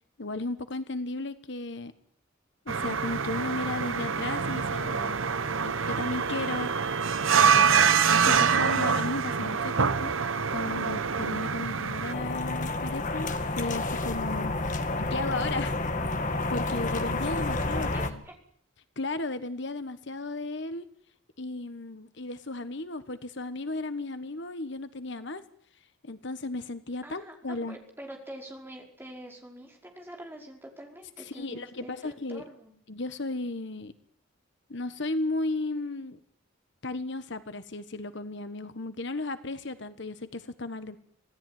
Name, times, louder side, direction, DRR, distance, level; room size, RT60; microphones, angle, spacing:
voice 1, 0.2-1.9 2.6-5.2 5.6-10.1 10.5-14.5 15.0-15.7 16.5-18.2 19.0-20.8 21.4-25.4 26.0-27.8 31.2-32.4 32.9-33.9 34.7-36.2 36.8-41.0, left 2 dB, 60° left, 12 dB, 1.4 m, -35 dB
sound 1, 2.7-12.1, right 6 dB, 75° right, 1.0 m, -25 dB
sound 2, 12.1-18.1, left 2 dB, 40° left, 2.1 m, -30 dB
voice 2, 17.5-18.3 27.0-32.7, right 1 dB, 10° right, 1 dB, 5.2 m, -45 dB
26.5 x 17.5 x 9.4 m, 0.65 s
head